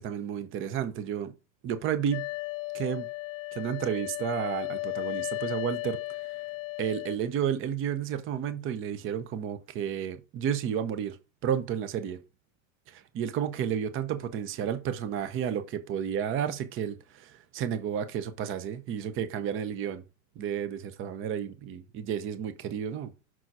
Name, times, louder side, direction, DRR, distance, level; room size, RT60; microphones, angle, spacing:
voice 1, 0.0-1.3 1.6-2.2 2.7-3.1 3.5-6.3 6.8-11.2 11.4-12.2 12.9-20.0 20.4-23.1, right 8 dB, 30° right, 0.8 m, -32 dB
sound 1, 2.1-7.2, left 21 dB, 35° left, 0.5 m, -35 dB
6.2 x 3.8 x 4.7 m
supercardioid pair, 125°, 39 cm